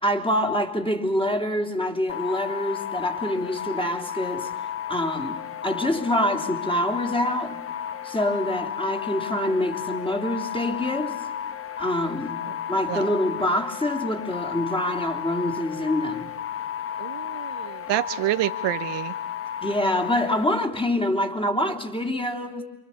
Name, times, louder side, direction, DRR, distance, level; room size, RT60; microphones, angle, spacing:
voice 1, 0.0-4.5 4.9-7.6 8.0-11.2 11.8-12.4 12.7-16.3 19.6-22.6, left 1 dB, 10° left, 3.0 m, -26 dB
sound 1, 2.1-20.4, left 9 dB, 25° left, 1.1 m, -33 dB
voice 2, 17.0-19.1, right 15 dB, 55° right, 1.0 m, -28 dB
29.0 x 23.5 x 7.1 m
hypercardioid pair, 80°, 50 cm